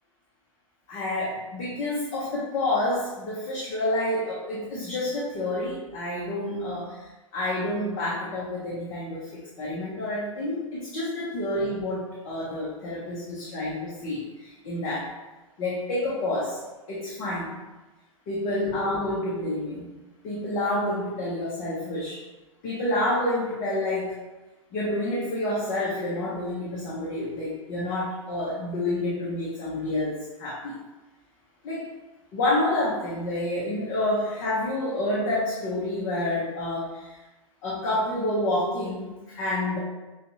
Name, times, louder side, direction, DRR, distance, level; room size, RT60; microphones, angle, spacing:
voice 1, 0.9-7.1 7.3-15.1 15.6-16.6 16.9-17.5 18.3-19.9 20.2-22.2 22.6-24.2 24.7-30.8 31.6-31.9 32.3-37.2 37.6-39.8, left 1 dB, 40° left, -6 dB, 1.1 m, -28 dB
6.4 x 2.5 x 2.9 m, 1.1 s
figure-of-eight pair, 95°, 17 cm